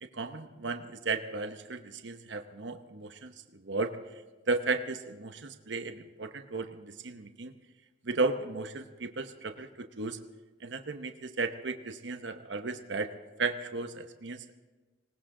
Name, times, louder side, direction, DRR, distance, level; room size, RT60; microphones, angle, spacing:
voice 1, 0.0-4.0 4.5-7.5 8.0-10.2 10.6-13.1 13.4-14.5, right 3 dB, 70° right, 7 dB, 0.9 m, -35 dB
19.5 x 18.5 x 3.8 m, 1.2 s
head